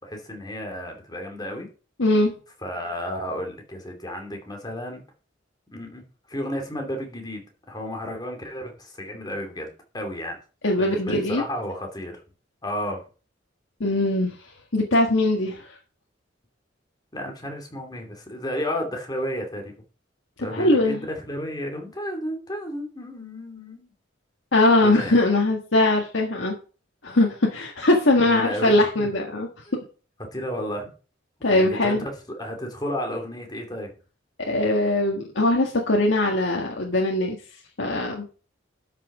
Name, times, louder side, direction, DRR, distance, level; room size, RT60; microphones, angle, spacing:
voice 1, 0.0-1.7 2.6-5.0 5.7-6.0 6.3-7.4 7.7-10.4 10.8-12.2 12.6-13.0 17.1-19.7 20.4-23.9 24.8-25.1 28.2-29.1 30.3-30.9 31.5-33.9, equal, 20° left, 2.7 m, -32 dB
voice 2, 2.0-2.3 10.6-11.4 13.8-14.3 14.7-15.7 20.5-21.0 24.5-26.5 27.0-29.5 31.4-32.0 34.5-37.4 37.8-38.2, left 2 dB, 80° left, 1.7 m, -21 dB
12.5 x 5.9 x 4.9 m
head